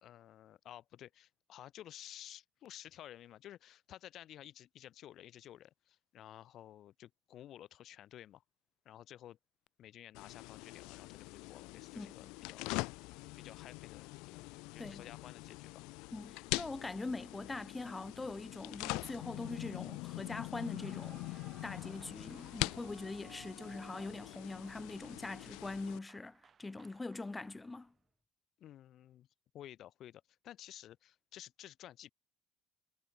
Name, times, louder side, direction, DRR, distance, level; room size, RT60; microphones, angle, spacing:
voice 1, 0.0-8.4 8.9-9.4 9.8-12.7 13.4-14.0 14.3-15.8 28.6-29.3 29.5-32.1, left 12 dB, 45° left, 2.0 m, -53 dB
sound 1, 10.1-26.0, left 26 dB, 90° left, 0.5 m, -43 dB
voice 2, 16.1-27.9, left 3 dB, 10° left, 1.2 m, -43 dB
Clapping / Cheering / Applause, 20.5-27.9, right 7 dB, 25° right, 5.4 m, -61 dB
cardioid pair, 170°, 0 cm